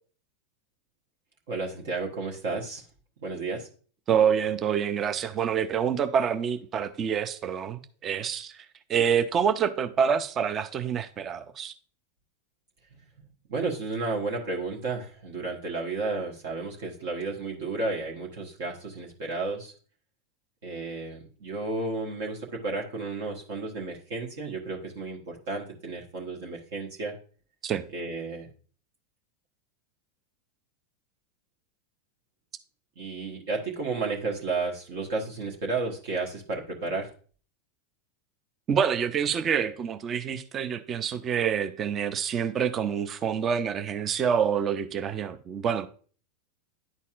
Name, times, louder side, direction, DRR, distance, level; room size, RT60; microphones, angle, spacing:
voice 1, 1.5-2.8 3.2-3.7 13.5-19.7 20.6-27.1 27.9-28.5 33.0-37.1, right 3 dB, 65° right, 1.2 m, -32 dB
voice 2, 4.1-8.5 8.9-11.7 27.6-27.8 38.7-45.9, right 7 dB, 35° right, 0.5 m, -27 dB
10.5 x 4.1 x 2.4 m
hypercardioid pair, 100°, 0 cm